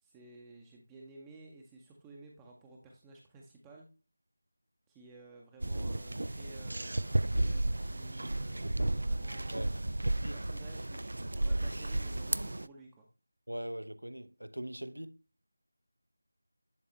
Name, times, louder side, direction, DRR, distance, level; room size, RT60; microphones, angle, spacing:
voice 1, 0.0-3.9 4.9-9.9 10.2-13.1, right 2 dB, 10° right, 0.6 m, -54 dB
sound 1, 5.6-12.7, right 1 dB, 55° right, 0.3 m, -33 dB
voice 2, 10.0-10.4 13.5-15.2, equal, 80° right, 0.7 m, -41 dB
10.5 x 3.8 x 3.0 m
figure-of-eight pair, 165°, 0 cm